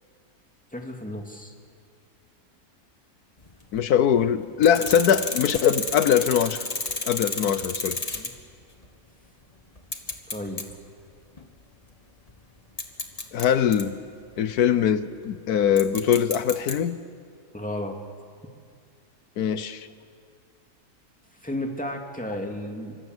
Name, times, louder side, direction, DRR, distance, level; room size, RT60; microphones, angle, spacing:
voice 1, 0.7-1.5 8.1-8.3 10.3-10.6 17.5-18.0 21.4-23.0, left 1 dB, 5° left, 2 dB, 2.5 m, -33 dB
sound 1, 3.4-3.8 4.6-8.5 8.8-8.9 9.8-10.7 11.2-11.4 12.3-12.4 12.8-13.8 15.8-16.7, left 2 dB, 25° left, 1.7 m, -31 dB
voice 2, 3.7-6.7 7.1-8.0 13.3-13.9 14.4-17.0 19.4-19.9, left 8 dB, 90° left, 13 dB, 1.4 m, -22 dB
28.0 x 25.0 x 8.1 m, 2.2 s
omnidirectional pair, 1.6 m